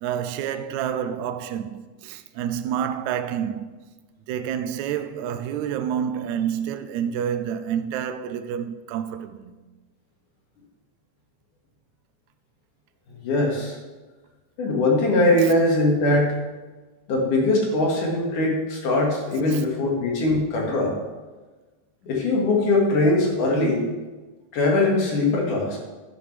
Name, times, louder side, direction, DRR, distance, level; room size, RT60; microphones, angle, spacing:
voice 1, 0.0-3.7 4.3-9.6 19.5-19.6, right 9 dB, 75° right, 1.8 m, -28 dB
voice 2, 13.1-13.8 14.6-16.4 17.1-20.9 22.0-23.9 24.5-25.8, left 2 dB, 75° left, 3.5 m, -21 dB
11.0 x 11.0 x 3.4 m
omnidirectional pair, 3.7 m